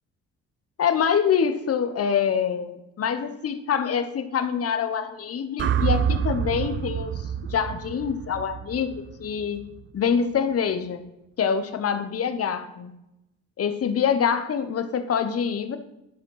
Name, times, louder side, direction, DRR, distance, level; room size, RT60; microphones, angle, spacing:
voice 1, 0.8-9.6 9.9-11.0 11.4-12.9 13.6-15.8, left 7 dB, 50° left, 10 dB, 1.1 m, -25 dB
sound 1, 5.6-9.8, right 8 dB, 40° right, 0.4 m, -28 dB
11.0 x 5.1 x 5.7 m, 0.89 s
cardioid pair, 90°, 30 cm